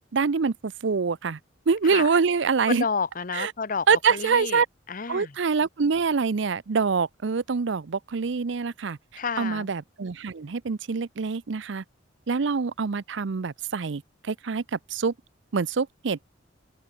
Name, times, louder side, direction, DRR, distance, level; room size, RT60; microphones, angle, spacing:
voice 1, 0.1-1.4 1.7-2.9 3.3-3.5 3.9-4.7 5.1-9.0 9.4-11.8 12.3-15.1 15.5-16.2, right 5 dB, 65° right, 0.6 m, -25 dB
voice 2, 2.7-5.3 9.2-9.7, left 5 dB, 45° left, 0.8 m, -31 dB
open air
head